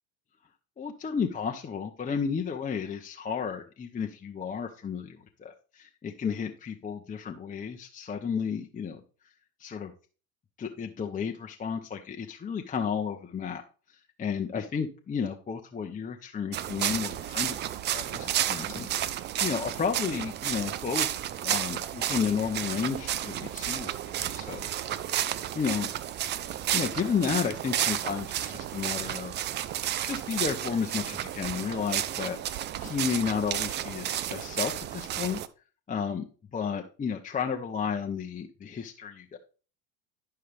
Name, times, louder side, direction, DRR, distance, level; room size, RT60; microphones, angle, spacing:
voice 1, 0.8-9.0 9.6-9.9 10.6-13.6 13.9-17.7 17.9-21.1 21.4-24.7 25.5-25.9 26.7-29.3 30.0-35.4 35.9-36.3 36.5-39.4, left 6 dB, 15° left, 3 dB, 0.7 m, -32 dB
sound 1, 16.5-35.5, right 11 dB, 25° right, 0.4 m, -32 dB
11.0 x 5.6 x 3.4 m, 0.37 s
hypercardioid pair, 80°, 49 cm